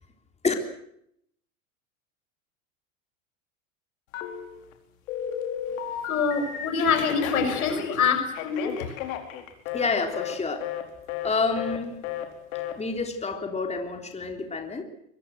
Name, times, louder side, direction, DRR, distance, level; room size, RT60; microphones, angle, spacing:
Telephone, 4.1-4.7 5.1-6.7 7.1-9.9 10.1-10.4 10.6-10.8 11.1-11.3 11.6-11.8 12.0-12.3 12.5-12.7, left 9 dB, 70° left, 4.5 m, -33 dB
voice 1, 6.1-8.9, left 5 dB, 90° left, 6 dB, 6.1 m, -25 dB
voice 2, 9.7-10.7 11.2-12.0 12.8-14.8, left 4 dB, 15° left, 4 dB, 3.6 m, -28 dB
23.5 x 20.5 x 8.0 m, 0.74 s
hypercardioid pair, 100°, 42 cm